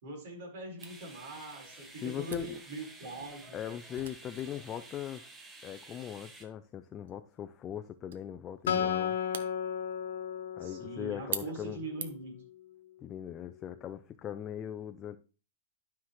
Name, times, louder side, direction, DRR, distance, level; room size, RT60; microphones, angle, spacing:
voice 1, 0.0-3.6 10.6-12.4, right 2 dB, 60° right, 4.5 m, -42 dB
sound 1, 0.8-6.4, right 2 dB, 10° right, 1.3 m, -52 dB
Camera, 0.8-12.4, right 7 dB, 80° right, 1.1 m, -47 dB
voice 2, 2.0-2.6 3.5-5.2 5.6-9.2 10.6-11.8 13.0-15.2, left 10 dB, 20° left, 0.4 m, -40 dB
Acoustic guitar, 8.7-12.1, left 8 dB, 90° left, 1.2 m, -34 dB
12.0 x 5.8 x 3.1 m
supercardioid pair, 160°, 0 cm